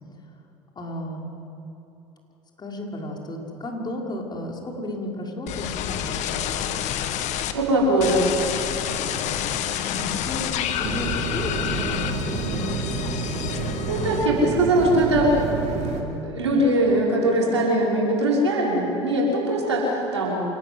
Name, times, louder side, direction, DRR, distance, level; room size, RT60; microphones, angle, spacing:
voice 1, 0.8-1.3 2.6-6.4 8.8-9.3 9.9-12.7, left 1 dB, 30° left, -1 dB, 5.7 m, -33 dB
sound 1, 5.5-7.5 8.0-14.6 14.9-15.4, left 10 dB, 55° left, 1.8 m, -29 dB
voice 2, 7.5-8.2 13.9-15.3 16.2-20.4, right 1 dB, 85° right, -4 dB, 5.9 m, -21 dB
sound 2, 10.8-16.0, right 3 dB, 55° right, 4.1 m, -29 dB
27.5 x 19.5 x 8.1 m, 2.9 s
figure-of-eight pair, 65°, 14 cm